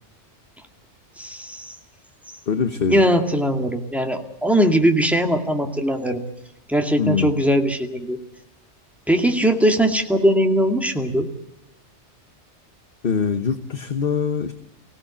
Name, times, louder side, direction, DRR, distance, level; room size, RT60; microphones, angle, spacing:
voice 1, 1.2-1.8 2.9-6.2 6.7-8.2 9.1-11.3, equal, ahead, 4 dB, 2.1 m, -20 dB
voice 2, 2.5-3.0 7.0-7.4 13.0-14.5, left 6 dB, 55° left, 8 dB, 1.3 m, -23 dB
24.5 x 17.0 x 8.5 m, 0.89 s
omnidirectional pair, 1.2 m